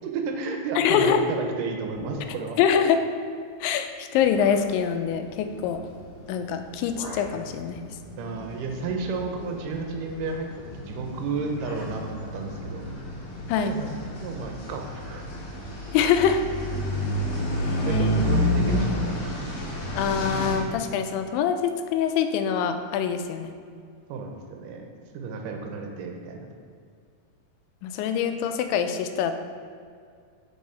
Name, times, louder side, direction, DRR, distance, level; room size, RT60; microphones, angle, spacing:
voice 1, 0.0-2.6 8.2-12.9 13.6-13.9 14.2-15.2 17.8-19.4 24.1-26.5, right 4 dB, 80° right, 3 dB, 2.2 m, -32 dB
voice 2, 0.8-1.2 2.6-3.0 3.6-5.9 6.3-7.9 13.5-13.8 15.9-16.4 17.6-18.2 20.0-23.5 27.8-29.3, left 7 dB, 90° left, 7 dB, 2.3 m, -24 dB
sound 1, 1.9-2.7 3.6-3.7 4.2-4.7 6.1-6.4 6.6-7.4, left 1 dB, 45° left, 1.7 m, -42 dB
sound 2, 5.1-5.2 5.4-20.6, left 1 dB, 65° left, 2.8 m, -30 dB
7.1 x 5.4 x 4.3 m, 2.2 s
omnidirectional pair, 3.9 m